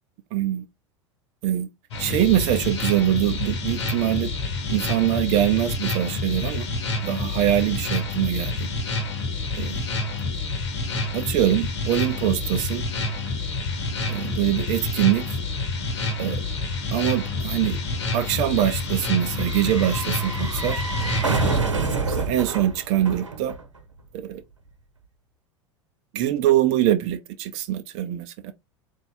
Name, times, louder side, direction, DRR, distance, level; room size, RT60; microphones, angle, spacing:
voice 1, 0.3-0.7 1.4-1.7 2.0-4.3 4.7-6.7 7.0-8.7 9.5-9.8 11.1-12.8 14.1-15.4 16.2-16.4 16.9-17.8 18.1-20.8 22.0-23.5 24.1-24.4 26.1-28.5, right 12 dB, 45° right, 0.6 m, -23 dB
sound 1, 1.9-21.6, left 3 dB, 65° left, 1.2 m, -28 dB
sound 2, 13.3-13.4 13.6-24.0 24.2-24.3, right 4 dB, 85° right, 0.9 m, -30 dB
4.1 x 2.7 x 3.4 m
figure-of-eight pair, 80°, 15 cm